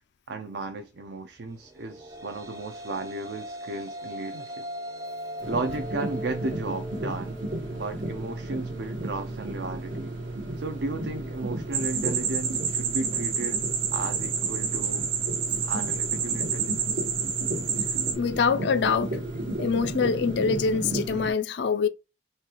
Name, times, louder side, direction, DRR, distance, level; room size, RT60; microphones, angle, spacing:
voice 1, 0.3-4.7 5.5-7.4 7.7-10.1 10.6-13.6 13.9-15.0 15.6-17.0, right 3 dB, 65° right, 0.5 m, -34 dB
sound 1, 1.7-10.2, equal, 15° right, 0.5 m, -40 dB
sound 2, 5.4-21.3, right 1 dB, 80° right, 1.2 m, -34 dB
sound 3, 11.7-18.1, right 7 dB, 50° right, 1.2 m, -29 dB
voice 2, 18.1-19.2 19.6-21.9, left 5 dB, 65° left, 0.4 m, -24 dB
4.0 x 2.3 x 2.9 m
head